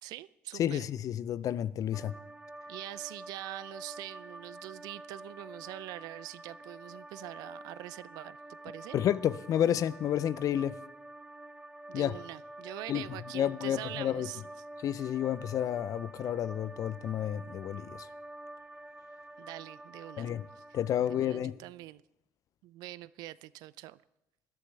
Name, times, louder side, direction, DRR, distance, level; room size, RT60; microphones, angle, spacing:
voice 1, 0.0-0.9 2.7-9.0 11.9-14.4 15.1-15.2 19.4-20.3 20.6-20.7 21.0-22.0 22.6-24.0, right 17 dB, 70° right, 0.4 m, -44 dB
voice 2, 0.6-2.1 8.9-10.8 11.9-12.1 12.9-13.0 13.3-14.3 14.8-18.1 20.2-20.5 20.7-21.6, left 10 dB, 55° left, 0.5 m, -30 dB
sound 1, 1.9-21.4, right 1 dB, 10° right, 0.7 m, -48 dB
18.5 x 11.5 x 3.3 m
hypercardioid pair, 60°, 7 cm